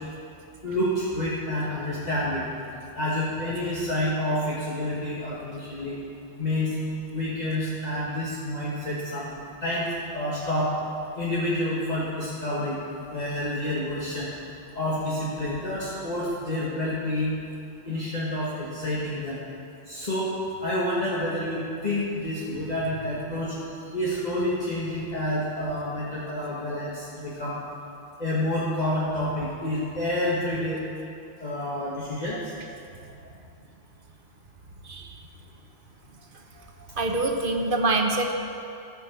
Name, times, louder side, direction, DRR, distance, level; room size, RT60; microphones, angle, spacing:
voice 1, 0.6-2.4 2.9-5.9 6.4-6.7 7.1-9.3 9.6-9.9 10.1-10.7 11.2-12.8 13.1-14.3 14.7-17.3 17.9-19.4 19.9-20.3 20.6-23.5 23.9-27.6 28.2-30.8 31.4-32.4, left 1 dB, 35° left, -8 dB, 1.7 m, -28 dB
voice 2, 34.8-35.2 37.0-38.3, right 2 dB, 50° right, 3 dB, 1.1 m, -25 dB
14.5 x 5.8 x 7.0 m, 2.6 s
omnidirectional pair, 1.2 m